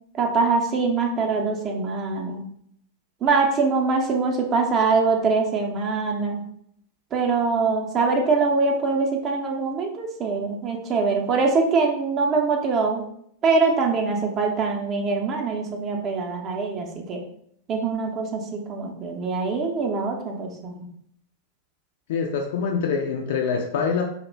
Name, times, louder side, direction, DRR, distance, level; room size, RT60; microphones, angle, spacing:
voice 1, 0.2-2.4 3.2-6.4 7.1-13.0 13.4-17.2 17.7-20.9, right 4 dB, 30° right, 1 dB, 0.5 m, -23 dB
voice 2, 22.1-24.0, left 6 dB, 55° left, 2 dB, 0.3 m, -25 dB
2.4 x 2.1 x 3.2 m, 0.69 s
figure-of-eight pair, 90°, 0 cm